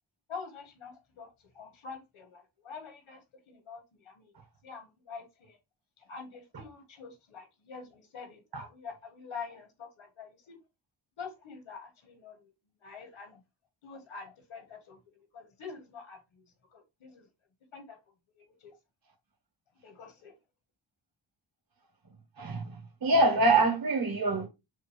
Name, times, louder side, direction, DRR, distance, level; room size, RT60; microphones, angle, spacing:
voice 1, 0.3-4.3 4.6-5.6 6.0-10.6 11.2-12.5 12.8-13.4 13.8-16.4 16.7-17.3 17.7-18.0 18.3-18.8 19.8-20.3, left 5 dB, 85° left, 1.5 m, -46 dB
voice 2, 22.4-24.5, right 2 dB, 50° right, 1.2 m, -25 dB
6.3 x 2.4 x 3.2 m
wide cardioid pair, 115°, 47 cm